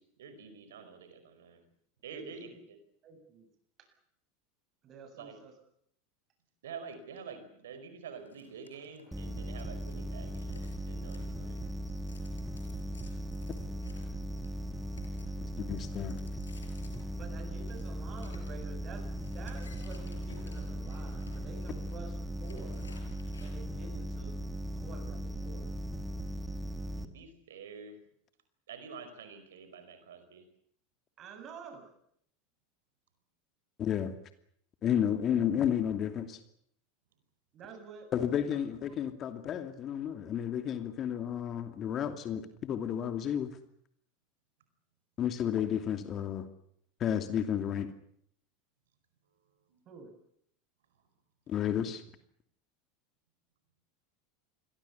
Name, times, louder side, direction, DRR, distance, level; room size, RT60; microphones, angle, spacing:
voice 1, 0.0-1.6 2.0-2.8 5.1-5.4 6.6-11.7 26.9-28.0 28.7-30.4 49.7-49.8, right 6 dB, 70° right, 9 dB, 4.9 m, -48 dB
voice 2, 2.1-2.5 3.0-3.5 3.8-3.9 4.8-5.5 17.1-22.9 23.4-24.4 24.7-25.7 31.2-31.9 37.5-38.1 49.9-50.1, right 5 dB, 35° right, 7 dB, 7.9 m, -49 dB
sound 1, 8.3-10.0 10.2-23.7, left 4 dB, 80° left, 5.3 m, -58 dB
sound 2, 9.1-27.1, equal, 5° right, 2.4 m, -38 dB
voice 3, 15.4-16.2 33.8-34.1 34.8-36.4 38.1-43.6 45.2-46.5 47.0-47.9 51.5-52.0, left 9 dB, 35° left, 8 dB, 2.6 m, -32 dB
29.0 x 22.5 x 7.1 m, 0.70 s
figure-of-eight pair, 80°, 0 cm